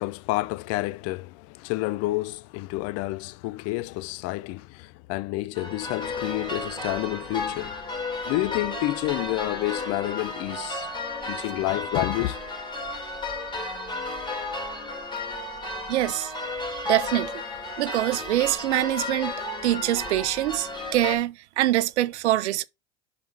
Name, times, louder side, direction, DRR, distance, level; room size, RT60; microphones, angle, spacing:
voice 1, 0.0-7.8 8.3-10.9 11.3-12.4, left 19 dB, 50° left, 0.5 m, -29 dB
sound 1, 5.6-21.2, left 2 dB, 15° left, 3.1 m, -33 dB
voice 2, 15.9-16.3 16.8-17.3 17.8-22.6, right 14 dB, 80° right, 0.6 m, -25 dB
5.6 x 4.5 x 5.5 m
hypercardioid pair, 85°, 33 cm